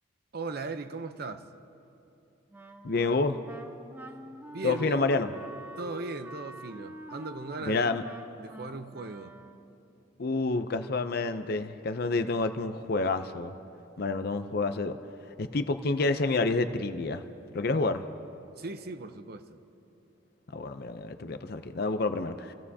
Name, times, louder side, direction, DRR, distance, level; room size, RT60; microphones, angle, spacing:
voice 1, 0.3-1.5 4.5-5.0 5.8-8.0 8.4-9.4 18.6-19.6, right 3 dB, 50° right, 9 dB, 0.7 m, -38 dB
Wind instrument woodwind instrument, 2.5-9.8, right 1 dB, 10° right, 0.6 m, -46 dB
voice 2, 2.8-3.4 4.6-5.3 7.7-8.0 10.2-13.5 14.0-15.0 15.4-17.2 17.5-18.0 20.5-22.5, left 3 dB, 50° left, 9 dB, 0.6 m, -28 dB
29.0 x 16.5 x 2.8 m, 2.9 s
head